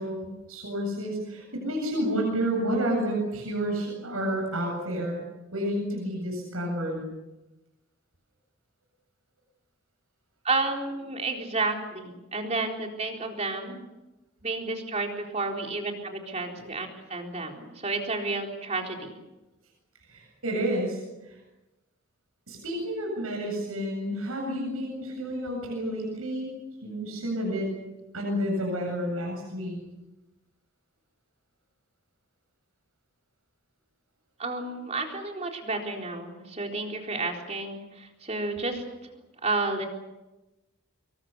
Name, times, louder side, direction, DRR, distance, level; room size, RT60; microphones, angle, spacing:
voice 1, 0.0-5.2 5.5-7.0 20.1-21.4 22.5-26.5 26.8-27.7 28.1-29.8, equal, 80° right, 0 dB, 8.0 m, -30 dB
voice 2, 10.4-13.8 14.4-19.2 34.4-38.8 39.4-39.9, right 3 dB, 30° right, 2 dB, 4.1 m, -31 dB
26.0 x 23.5 x 6.9 m, 1.0 s
head